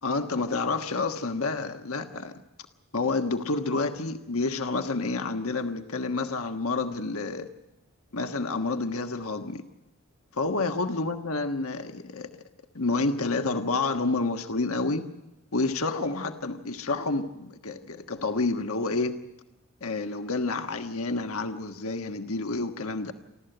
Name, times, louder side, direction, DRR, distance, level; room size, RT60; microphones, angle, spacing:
voice 1, 0.0-2.3 2.9-7.5 8.1-9.6 10.4-12.3 12.7-15.0 15.5-19.2 19.8-23.1, left 3 dB, 70° left, 6 dB, 1.4 m, -29 dB
29.0 x 13.0 x 7.9 m, 0.98 s
head